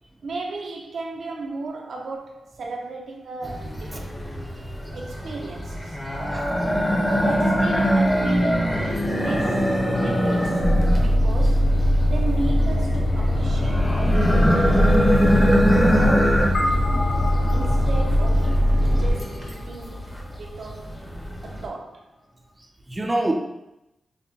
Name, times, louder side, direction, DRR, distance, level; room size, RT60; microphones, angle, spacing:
voice 1, 0.2-4.1 4.9-6.0 7.2-8.8 9.0-9.7 10.0-10.6 11.0-11.7 12.1-14.7 15.8-17.0 17.5-21.0 21.4-22.1, right 3 dB, 75° right, 0.5 m, -35 dB
sound 1, 3.4-21.6, equal, 15° left, 0.7 m, -23 dB
sound 2, 10.6-19.1, equal, 75° left, 0.7 m, -20 dB
sound 3, 16.5-21.1, left 1 dB, 45° left, 0.9 m, -33 dB
voice 2, 22.6-23.3, right 1 dB, 15° right, 0.4 m, -27 dB
5.2 x 2.1 x 2.7 m
wide cardioid pair, 130°, 0 cm